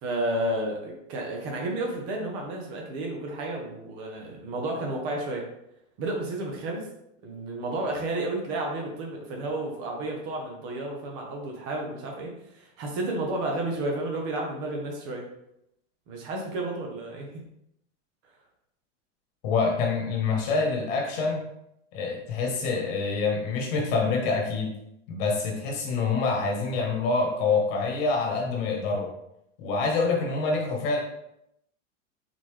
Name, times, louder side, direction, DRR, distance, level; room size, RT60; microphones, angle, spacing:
voice 1, 0.0-5.5 6.0-6.8 7.2-15.3 16.1-17.3, right 2 dB, 40° right, 0 dB, 1.1 m, -31 dB
voice 2, 19.4-21.4 21.9-24.7 25.1-29.1 29.6-31.0, left 4 dB, 50° left, 0 dB, 1.3 m, -26 dB
4.0 x 4.0 x 3.2 m, 0.79 s
supercardioid pair, 160°, 38 cm